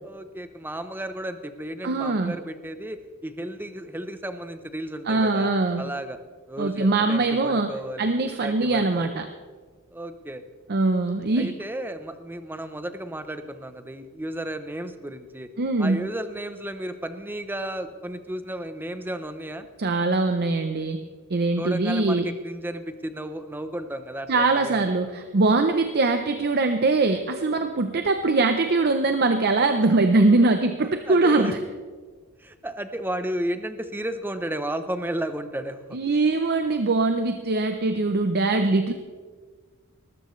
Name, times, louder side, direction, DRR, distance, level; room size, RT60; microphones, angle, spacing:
voice 1, 0.0-5.5 5.8-6.2 6.5-9.1 9.9-10.4 11.4-15.5 15.8-19.7 21.6-24.8 31.0-31.5 32.4-36.0, right 1 dB, 10° right, 10 dB, 0.7 m, -33 dB
voice 2, 1.8-2.4 5.1-5.8 6.6-7.7 8.0-9.3 10.7-11.5 15.6-16.1 19.8-21.0 21.3-22.3 24.3-31.6 35.9-38.9, right 3 dB, 50° right, 7 dB, 0.7 m, -22 dB
19.5 x 13.5 x 3.2 m, 1.5 s
head